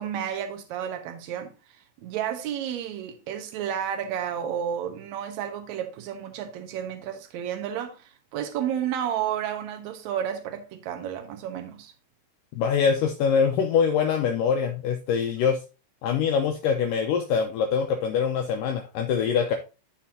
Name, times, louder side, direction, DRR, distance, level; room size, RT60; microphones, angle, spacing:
voice 1, 0.0-1.5 2.0-11.9, right 9 dB, 70° right, 1.8 m, -31 dB
voice 2, 12.5-15.6 16.0-19.5, left 6 dB, 75° left, 2.1 m, -24 dB
13.0 x 4.4 x 2.8 m
omnidirectional pair, 4.6 m